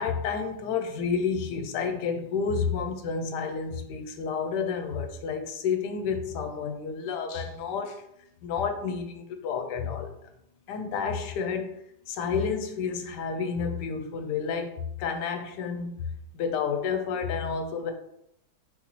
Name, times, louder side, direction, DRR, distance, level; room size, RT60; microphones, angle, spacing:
voice 1, 0.0-8.0 8.4-10.1 10.7-11.8 12.1-16.1 16.3-17.9, left 6 dB, 90° left, 6 dB, 1.2 m, -30 dB
4.2 x 4.0 x 3.0 m, 0.77 s
omnidirectional pair, 1.8 m